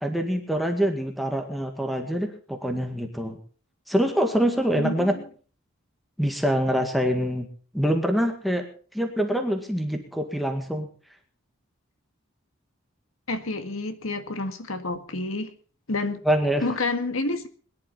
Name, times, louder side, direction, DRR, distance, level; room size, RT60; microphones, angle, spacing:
voice 1, 0.0-3.4 3.9-5.1 6.2-7.5 7.7-8.7 8.9-10.9 16.3-16.6, equal, ahead, 5 dB, 1.9 m, -25 dB
voice 2, 4.8-5.2 13.3-15.5 15.9-16.2 16.6-17.5, left 2 dB, 80° left, 9 dB, 1.9 m, -29 dB
21.5 x 11.5 x 4.1 m, 0.39 s
head